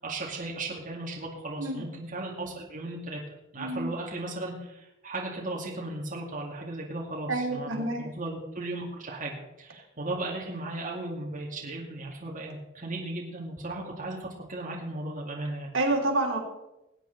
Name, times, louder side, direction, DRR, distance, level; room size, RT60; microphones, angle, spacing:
voice 1, 0.0-3.2 3.5-15.7, right 2 dB, 40° right, -2 dB, 2.2 m, -36 dB
voice 2, 3.6-3.9 7.3-8.1 15.7-16.4, right 2 dB, 75° right, 0 dB, 3.0 m, -28 dB
20.5 x 8.9 x 4.0 m, 0.93 s
head